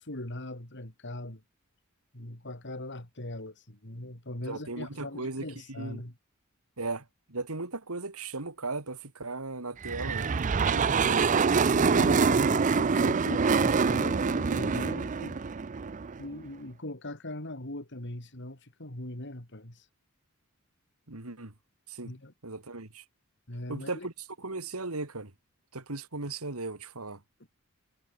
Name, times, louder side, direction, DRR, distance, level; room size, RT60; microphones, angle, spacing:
voice 1, 0.0-1.4 2.1-6.1 10.9-11.3 11.7-15.4 16.2-19.9 22.0-22.3 23.5-24.1, left 1 dB, 55° left, 4.1 m, -40 dB
voice 2, 4.5-6.0 6.8-11.3 21.1-21.5 21.9-22.1 22.4-23.0 23.7-24.1 24.4-25.3 25.7-27.2, right 3 dB, 90° right, 2.6 m, -37 dB
sound 1, 9.8-16.2, right 5 dB, 35° right, 0.5 m, -25 dB
head